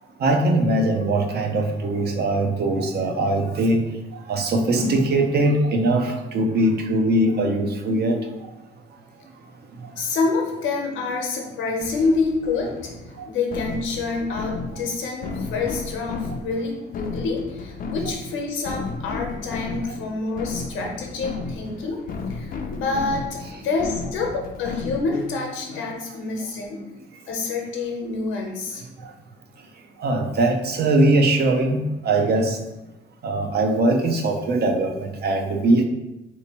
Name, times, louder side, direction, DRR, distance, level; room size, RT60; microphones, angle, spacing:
voice 1, 0.2-3.8 4.3-8.2 30.0-31.8 32.0-32.6 33.2-35.8, right 2 dB, 55° right, 4 dB, 0.6 m, -21 dB
voice 2, 10.0-12.7 13.3-22.0 22.3-26.8 27.3-28.8, left 3 dB, 85° left, 0 dB, 0.8 m, -27 dB
sound 1, 11.8-25.3, left 3 dB, 45° left, 0.4 m, -33 dB
3.3 x 2.8 x 2.9 m, 0.99 s
cardioid pair, 90°, 20 cm